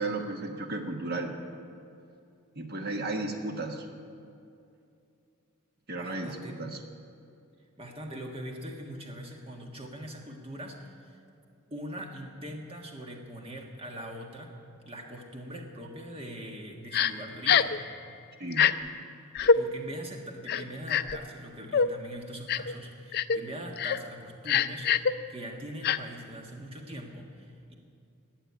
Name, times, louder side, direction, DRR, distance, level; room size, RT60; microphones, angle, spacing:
voice 1, 0.0-1.4 2.5-3.9 5.9-6.8 18.4-18.7, right 2 dB, 45° right, 4 dB, 1.2 m, -34 dB
voice 2, 5.9-6.6 7.8-11.2 11.7-17.8 19.4-24.9 25.3-27.7, equal, 25° right, 1 dB, 1.7 m, -42 dB
Crying sobbing, 16.9-17.1 17.5-17.8 18.5-18.7 19.4-19.6 20.5-21.2 21.7-21.9 22.5-22.7 23.1-23.4 23.8-24.0 24.5-25.1 25.8-26.0, left 6 dB, 45° left, 0.4 m, -23 dB
18.5 x 6.7 x 9.5 m, 2.5 s
head